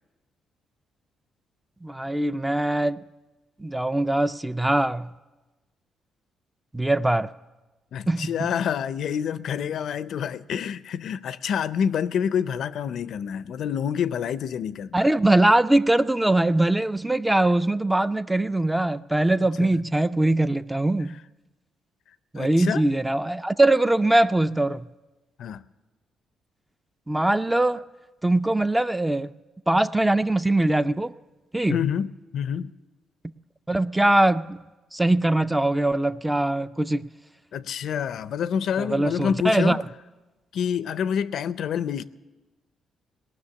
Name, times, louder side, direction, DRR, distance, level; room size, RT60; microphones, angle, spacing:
voice 1, 1.8-3.0 3.6-5.1 6.7-7.3 8.1-8.5 14.9-21.2 22.3-24.9 27.1-27.8 28.2-29.3 29.7-31.1 31.5-31.8 33.7-34.6 34.9-37.1 38.8-39.8, right 1 dB, 10° right, 0.4 m, -22 dB
voice 2, 7.9-15.0 19.4-19.7 22.4-22.8 25.4-25.6 31.7-32.7 37.5-39.8 40.5-42.0, left 8 dB, 70° left, 0.4 m, -27 dB
18.5 x 6.3 x 9.7 m
cardioid pair, 90°, 0 cm